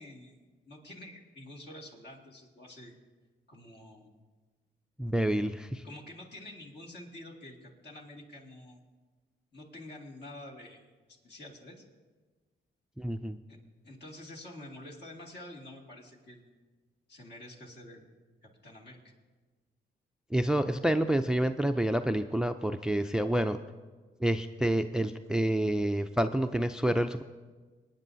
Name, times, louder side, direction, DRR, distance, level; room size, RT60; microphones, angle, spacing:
voice 1, 0.0-2.9 3.5-4.1 5.8-8.8 9.5-11.9 13.8-16.5 17.1-18.1 18.4-19.1, left 1 dB, 55° left, -1 dB, 2.4 m, -48 dB
voice 2, 5.0-5.8 13.0-13.4 20.3-23.6 24.2-27.2, right 1 dB, 5° right, 10 dB, 0.4 m, -28 dB
25.0 x 9.1 x 2.7 m, 1.3 s
supercardioid pair, 55°, 20 cm